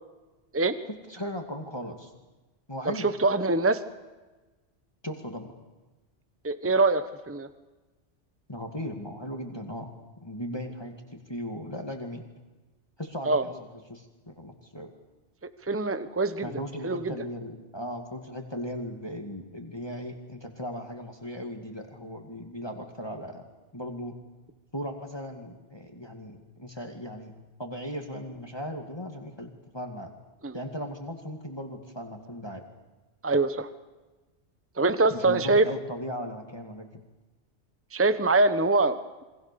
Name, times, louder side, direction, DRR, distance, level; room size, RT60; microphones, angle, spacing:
voice 1, 1.1-2.1 2.7-3.1 5.0-5.5 8.5-9.9 10.2-12.2 13.0-14.9 16.4-23.5 23.7-24.2 24.7-27.3 27.6-30.1 30.5-32.6 35.1-36.9, equal, 20° left, 3 dB, 2.3 m, -37 dB
voice 2, 2.9-3.8 6.4-7.5 13.2-13.4 15.7-16.5 16.8-17.1 30.4-30.5 33.2-33.7 34.8-35.7 37.9-39.2, right 3 dB, 10° right, 11 dB, 1.0 m, -24 dB
28.5 x 24.0 x 6.9 m, 1.2 s
omnidirectional pair, 1.2 m